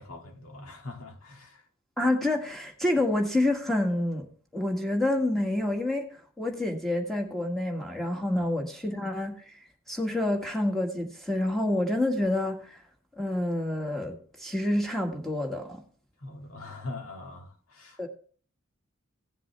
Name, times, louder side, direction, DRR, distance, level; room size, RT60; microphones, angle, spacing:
voice 1, 0.0-1.6 8.4-8.5 16.2-18.1, left 2 dB, 70° left, 2.0 m, -42 dB
voice 2, 2.0-4.3 4.5-6.1 6.4-9.4 9.9-12.8 13.2-15.8 18.0-18.1, left 1 dB, ahead, 1.6 m, -28 dB
16.0 x 7.5 x 3.3 m
head